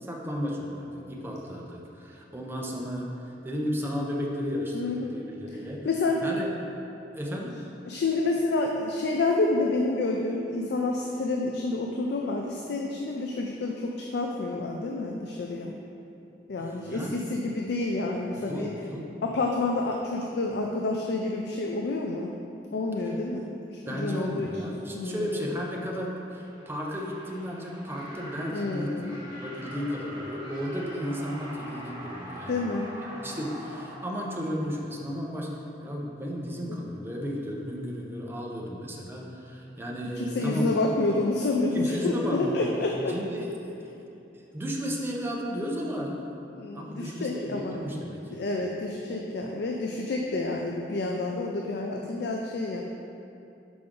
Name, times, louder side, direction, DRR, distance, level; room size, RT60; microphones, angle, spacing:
voice 1, 0.0-5.8 6.2-6.5 7.1-7.5 16.6-17.4 18.4-19.1 23.9-32.6 33.0-35.5 35.8-40.7 41.7-42.7 43.1-43.7 44.0-44.1 44.3-46.2 46.7-48.4, equal, 15° right, -2 dB, 0.7 m, -34 dB
voice 2, 4.7-5.1 5.8-6.2 7.9-15.7 16.5-18.7 19.2-22.3 22.7-23.5 23.9-25.4 28.5-29.1 32.5-32.9 36.7-36.8 40.2-43.1 46.5-47.8 48.3-52.8, left 2 dB, 65° left, 1 dB, 0.4 m, -29 dB
sound 1, 26.3-35.1, equal, 25° left, 1.4 m, -43 dB
5.9 x 4.9 x 3.7 m, 2.7 s
head